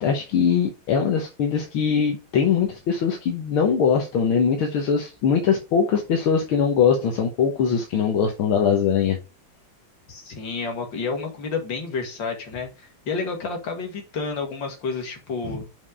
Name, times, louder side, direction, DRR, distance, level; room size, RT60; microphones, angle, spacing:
voice 1, 0.0-9.2 15.4-15.6, left 7 dB, 80° left, 2.0 m, -21 dB
voice 2, 10.1-15.7, left 4 dB, 65° left, 2.6 m, -30 dB
5.7 x 5.4 x 4.8 m
omnidirectional pair, 2.3 m